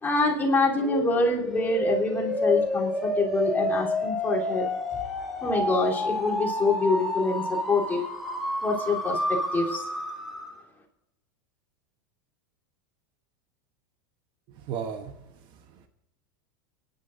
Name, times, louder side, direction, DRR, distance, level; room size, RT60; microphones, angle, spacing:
voice 1, 0.0-5.0 5.4-8.0 8.6-9.2 9.5-9.8, left 3 dB, 20° left, -2 dB, 3.4 m, -26 dB
sound 1, 0.8-10.6, left 1 dB, ahead, 2.4 m, -29 dB
voice 2, 14.5-15.9, right 7 dB, 45° right, 8 dB, 1.1 m, -37 dB
29.5 x 10.5 x 2.6 m, 0.93 s
supercardioid pair, 130°, 10 cm